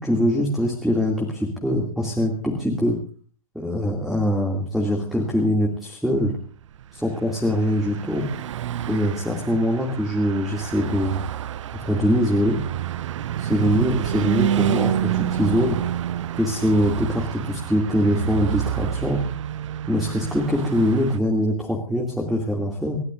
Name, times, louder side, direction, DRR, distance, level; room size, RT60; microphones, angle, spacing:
voice 1, 0.0-3.0 3.5-6.4 6.9-8.2 8.9-11.2 11.8-12.6 13.4-15.8 16.3-19.2 19.9-23.0, equal, ahead, 0 dB, 2.5 m, -23 dB
Car passing by / Truck, 6.8-21.2, right 10 dB, 55° right, 0.6 m, -28 dB
28.0 x 13.5 x 2.6 m, 0.42 s
figure-of-eight pair, 110°, 18 cm